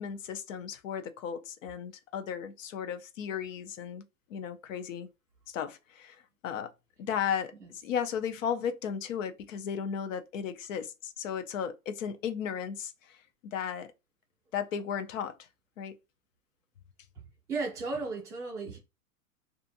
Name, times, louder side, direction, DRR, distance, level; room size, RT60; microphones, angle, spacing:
voice 1, 0.0-4.0 4.3-5.1 5.5-6.7 7.0-13.2 13.4-13.9 14.5-15.4 15.8-16.0, left 8 dB, 60° left, 0.5 m, -35 dB
voice 2, 17.5-18.8, right 3 dB, 5° right, 0.5 m, -35 dB
2.5 x 2.5 x 2.6 m
supercardioid pair, 155°, 45 cm